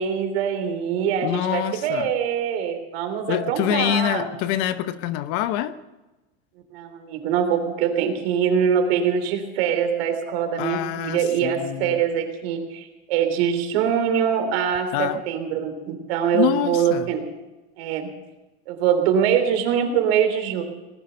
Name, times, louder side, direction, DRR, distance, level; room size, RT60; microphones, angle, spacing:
voice 1, 0.0-4.3 6.7-17.3 17.8-18.1 18.7-20.6, right 8 dB, 65° right, 6 dB, 3.2 m, -23 dB
voice 2, 1.2-2.1 3.3-5.7 10.6-12.0 14.9-15.2 16.3-17.1, left 12 dB, 45° left, 13 dB, 0.8 m, -25 dB
19.0 x 11.0 x 6.8 m, 1.1 s
supercardioid pair, 155°, 32 cm